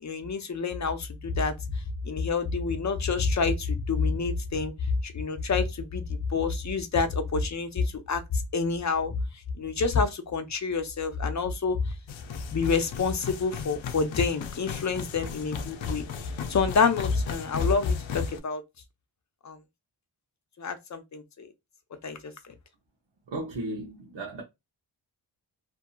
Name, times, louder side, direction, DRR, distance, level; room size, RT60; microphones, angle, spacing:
voice 1, 0.0-1.5 2.0-4.7 5.0-9.1 9.6-11.8 12.5-16.0 16.5-18.6 19.4-19.6 20.6-21.5 22.0-22.3, left 4 dB, 40° left, 0.6 m, -27 dB
sound 1, 12.1-18.4, left 7 dB, 85° left, 0.5 m, -37 dB
voice 2, 23.3-24.4, right 2 dB, 75° right, 0.8 m, -35 dB
2.7 x 2.6 x 2.2 m
wide cardioid pair, 75°, 44 cm